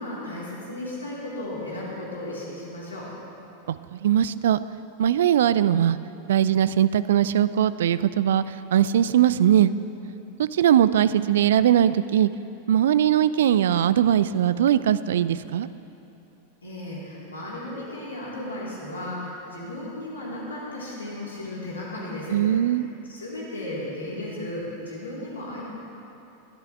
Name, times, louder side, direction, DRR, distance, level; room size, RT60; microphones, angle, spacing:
voice 1, 0.0-3.1 16.6-22.4 23.1-25.6, left 1 dB, 75° left, -6 dB, 3.9 m, -35 dB
voice 2, 3.7-4.6 5.0-6.0 6.3-9.7 10.4-12.3 12.7-15.7 22.3-22.9, right 10 dB, 60° right, 15 dB, 0.4 m, -20 dB
21.5 x 13.0 x 3.4 m, 2.8 s
figure-of-eight pair, 90°, 0 cm